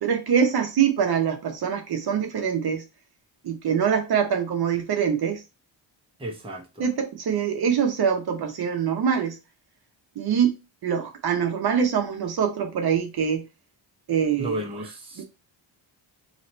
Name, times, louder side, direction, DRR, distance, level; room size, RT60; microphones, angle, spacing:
voice 1, 0.0-2.8 3.4-5.4 6.8-9.4 10.2-10.5 10.8-13.4 14.1-14.5 15.2-15.3, right 7 dB, 55° right, 0.7 m, -24 dB
voice 2, 6.2-6.9 14.4-15.2, right 1 dB, 10° right, 0.8 m, -33 dB
2.9 x 2.9 x 4.2 m
wide cardioid pair, 140°, 46 cm